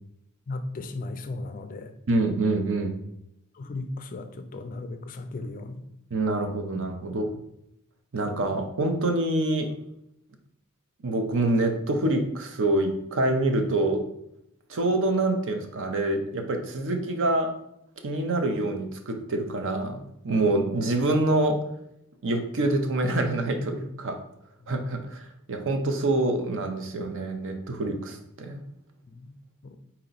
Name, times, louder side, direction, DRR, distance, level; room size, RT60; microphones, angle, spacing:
voice 1, 0.5-1.9 3.5-5.8 24.7-24.8 29.1-29.4 29.6-29.8, left 2 dB, 40° left, 8 dB, 0.4 m, -36 dB
voice 2, 2.1-3.0 6.1-7.3 8.1-9.7 11.0-14.0 14.7-17.5 18.0-21.6 22.2-24.2 24.7-28.6, right 2 dB, 60° right, 5 dB, 0.6 m, -26 dB
4.2 x 2.9 x 3.9 m, 0.79 s
head